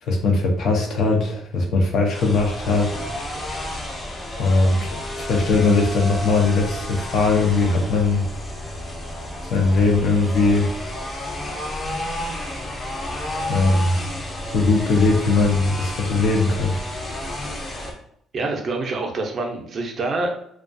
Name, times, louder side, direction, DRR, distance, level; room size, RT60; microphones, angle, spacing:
voice 1, 0.0-3.0 4.4-8.2 9.4-10.7 13.5-13.9 14.4-16.8, left 3 dB, 60° left, 1 dB, 0.6 m, -20 dB
sound 1, 2.1-17.9, left 1 dB, 20° left, 0.6 m, -31 dB
voice 2, 18.3-20.3, right 3 dB, 40° right, 2 dB, 0.5 m, -26 dB
2.3 x 2.2 x 2.5 m, 0.70 s
cardioid pair, 130°, 0 cm